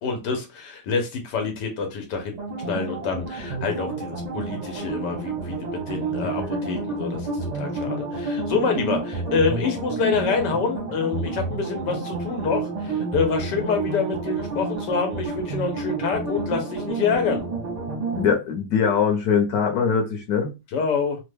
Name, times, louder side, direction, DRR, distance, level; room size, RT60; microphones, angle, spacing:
voice 1, 0.0-2.4 2.7-17.4 20.7-21.2, left 5 dB, 85° left, 1.4 m, -26 dB
sound 1, 2.4-18.3, right 3 dB, 40° right, 0.6 m, -30 dB
voice 2, 6.2-6.6 18.2-20.5, left 6 dB, 60° left, 1.3 m, -22 dB
3.3 x 2.2 x 3.3 m
omnidirectional pair, 1.8 m